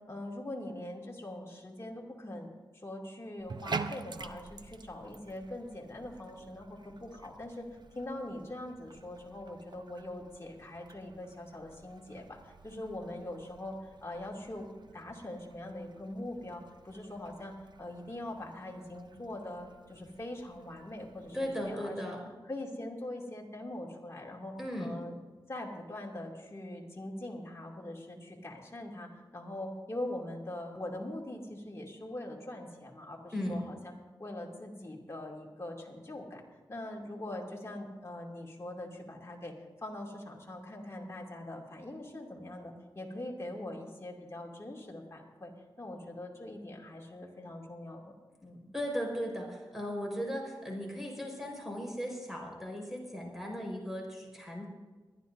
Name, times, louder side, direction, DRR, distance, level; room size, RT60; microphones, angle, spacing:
voice 1, 0.1-2.5 2.8-7.7 7.9-22.2 22.5-24.5 24.8-25.2 25.5-33.9 34.2-36.4 36.7-45.5 45.8-48.2 48.4-48.7, left 1 dB, 30° left, -2 dB, 2.6 m, -42 dB
Bathtub (filling or washing), 3.4-21.7, right 4 dB, 60° right, 0.7 m, -48 dB
voice 2, 21.3-22.2 24.6-24.9 33.3-33.6 48.7-54.6, equal, 5° right, -1 dB, 4.7 m, -37 dB
23.5 x 11.0 x 2.7 m, 1.3 s
cardioid pair, 60°, 9 cm